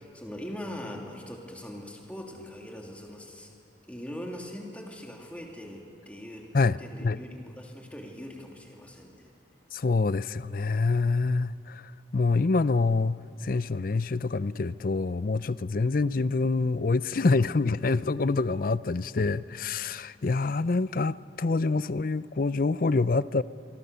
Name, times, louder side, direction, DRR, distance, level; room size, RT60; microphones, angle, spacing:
voice 1, 0.0-3.5 3.9-9.3, left 1 dB, 10° left, 0 dB, 2.8 m, -41 dB
voice 2, 6.5-7.2 9.7-23.4, left 3 dB, 50° left, 17 dB, 0.5 m, -26 dB
25.5 x 24.5 x 6.9 m, 2.6 s
head